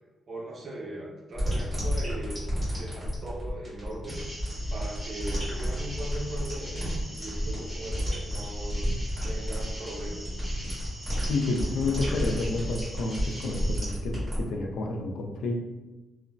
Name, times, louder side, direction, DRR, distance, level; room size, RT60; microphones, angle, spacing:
voice 1, 0.3-2.4 2.8-4.2 4.7-8.9 9.2-10.3, right 1 dB, 50° right, -2 dB, 0.6 m, -39 dB
sound 1, 1.4-14.4, equal, 30° right, 1.5 m, -31 dB
sound 2, 4.1-13.8, right 1 dB, 10° right, 0.7 m, -43 dB
voice 2, 11.3-15.6, left 3 dB, 90° left, 2 dB, 0.4 m, -30 dB
2.9 x 2.1 x 2.6 m, 1.1 s
cardioid pair, 105°, 0 cm